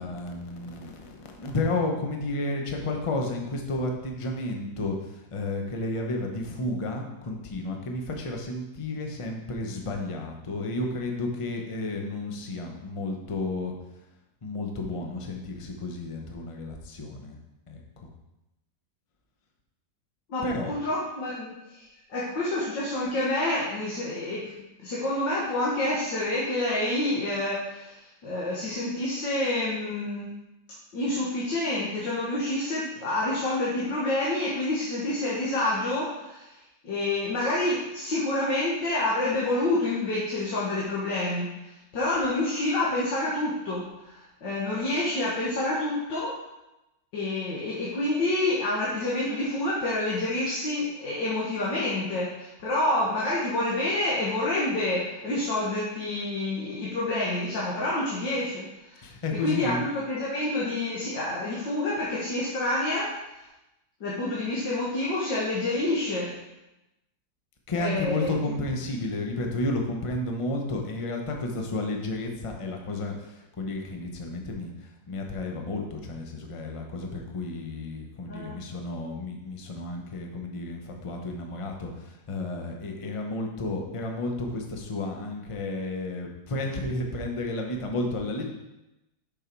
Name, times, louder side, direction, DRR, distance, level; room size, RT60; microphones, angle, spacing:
voice 1, 0.0-13.7 14.4-17.4 17.7-18.1 20.4-20.7 59.0-59.8 67.7-88.5, left 2 dB, 25° left, 2 dB, 0.7 m, -32 dB
voice 2, 20.3-24.5 24.8-30.3 30.9-36.5 36.8-41.5 41.9-46.3 47.1-59.1 59.4-63.1 64.0-66.3 67.8-68.3 78.3-78.6, left 2 dB, 85° left, -6 dB, 2.1 m, -28 dB
6.8 x 6.1 x 4.5 m, 0.95 s
omnidirectional pair, 1.9 m